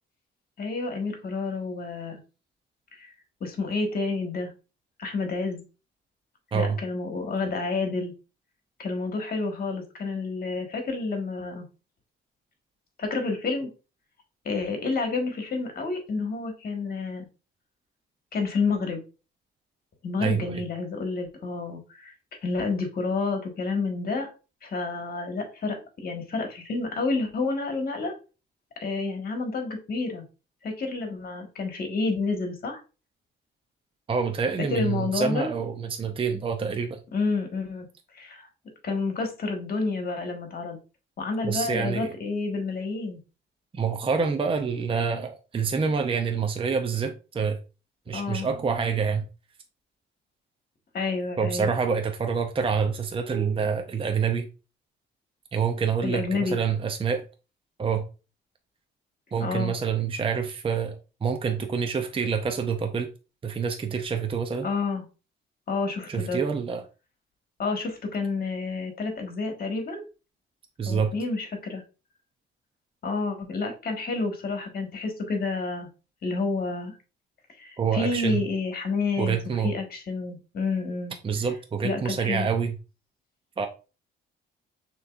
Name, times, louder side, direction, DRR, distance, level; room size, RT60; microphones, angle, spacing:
voice 1, 0.6-2.2 2.9-3.1 3.4-4.5 5.0-5.6 6.5-8.1 8.8-11.6 13.0-13.7 14.4-17.3 18.3-19.0 20.0-22.1 22.4-24.3 24.6-28.1 28.8-30.2 30.6-32.8 34.7-35.5 37.1-37.9 38.1-38.5 38.8-40.8 41.2-43.2 48.1-48.5 50.9-51.7 56.0-56.6 59.4-59.8 64.6-65.0 65.7-66.4 67.6-70.0 70.8-71.8 73.0-75.9 76.2-77.0 77.6-81.1 81.8-82.5, left 3 dB, 50° left, 1.5 m, -29 dB
voice 2, 20.2-20.6 34.1-37.0 41.4-42.1 43.7-47.6 48.1-49.3 51.4-54.5 55.5-57.2 57.8-58.0 59.3-63.1 63.4-64.7 66.1-66.8 70.8-71.1 77.8-78.4 79.2-79.7 81.2-82.8 83.6-83.7, right 6 dB, 25° right, 0.6 m, -27 dB
6.3 x 3.0 x 2.4 m
cardioid pair, 90°, 20 cm